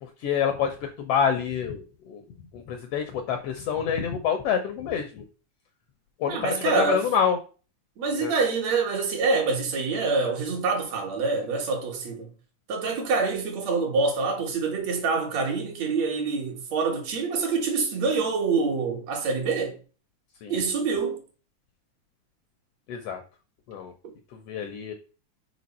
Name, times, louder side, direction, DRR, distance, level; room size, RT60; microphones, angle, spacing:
voice 1, 0.0-2.2 2.5-5.2 6.2-7.4 8.2-8.3 20.4-20.6 22.9-23.2 23.7-23.9 24.3-24.9, left 7 dB, 80° left, 1.4 m, -27 dB
voice 2, 6.3-7.0 8.0-12.3 12.7-19.8 20.5-21.2, right 4 dB, 65° right, 2.3 m, -26 dB
5.1 x 4.7 x 4.1 m
omnidirectional pair, 3.4 m